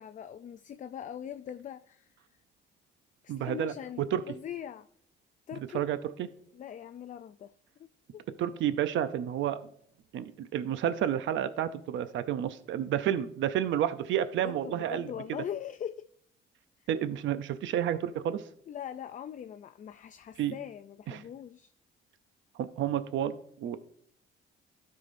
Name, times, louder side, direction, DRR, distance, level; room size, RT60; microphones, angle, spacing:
voice 1, 0.0-2.1 3.2-4.9 5.5-5.9 6.5-7.5 7.8-8.2 14.4-16.1 18.7-21.7, left 9 dB, 40° left, 0.4 m, -41 dB
voice 2, 3.3-4.3 5.7-6.3 8.4-9.6 10.1-15.1 16.9-18.4 20.4-20.5 21.1-21.2 22.5-23.8, right 10 dB, 75° right, 0.6 m, -30 dB
12.5 x 5.6 x 2.6 m
cardioid pair, 90°, 20 cm